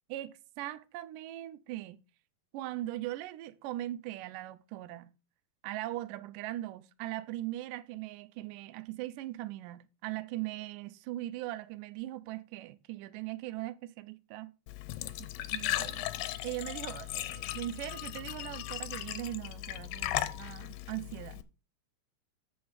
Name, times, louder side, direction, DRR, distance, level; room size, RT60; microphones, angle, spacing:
voice 1, 0.1-2.0 2.5-5.1 5.6-14.5 15.2-16.0 16.4-21.4, right 15 dB, 80° right, 2.1 m, -40 dB
Glass / Trickle dribble / Fill (with liquid), 14.7-21.4, left 14 dB, 80° left, 2.3 m, -37 dB
8.5 x 6.0 x 5.1 m
omnidirectional pair, 4.2 m